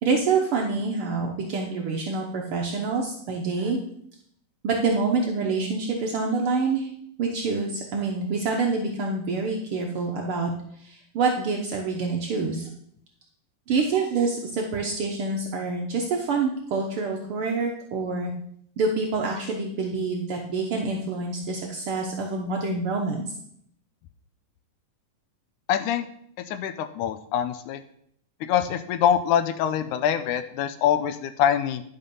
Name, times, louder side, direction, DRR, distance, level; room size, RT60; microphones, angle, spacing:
voice 1, 0.0-3.8 4.6-6.9 7.2-10.5 10.8-12.7 13.7-18.3 18.8-23.3, right 4 dB, 80° right, 0 dB, 1.2 m, -26 dB
voice 2, 25.7-26.1 26.5-27.8 28.5-31.8, left 9 dB, 80° left, 11 dB, 1.9 m, -24 dB
11.5 x 5.8 x 5.4 m, 0.69 s
omnidirectional pair, 3.8 m